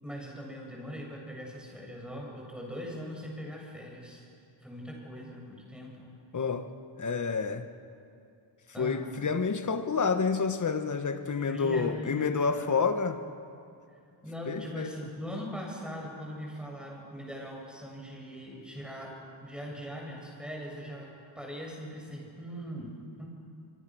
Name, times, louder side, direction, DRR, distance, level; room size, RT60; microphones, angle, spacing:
voice 1, 0.0-4.2 4.6-6.2 8.7-9.2 11.5-12.8 14.2-23.3, equal, ahead, -2 dB, 7.7 m, -41 dB
voice 2, 6.3-6.7 7.0-7.7 8.8-13.2 14.5-14.9, left 5 dB, 40° left, 9 dB, 1.5 m, -29 dB
25.5 x 25.0 x 6.4 m, 2.5 s
cardioid pair, 105°, 45 cm